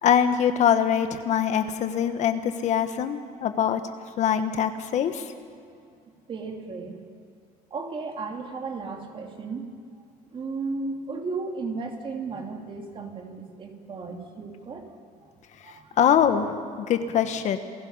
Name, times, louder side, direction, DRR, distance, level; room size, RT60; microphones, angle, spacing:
voice 1, 0.0-3.8 4.2-5.3 15.6-17.6, left 8 dB, 55° left, 9 dB, 1.3 m, -23 dB
voice 2, 6.3-7.0 7.7-9.7 10.3-15.0 15.6-16.0 16.8-16.9, right 4 dB, 35° right, 2 dB, 3.0 m, -35 dB
28.5 x 16.5 x 5.6 m, 2.3 s
cardioid pair, 120°, 14 cm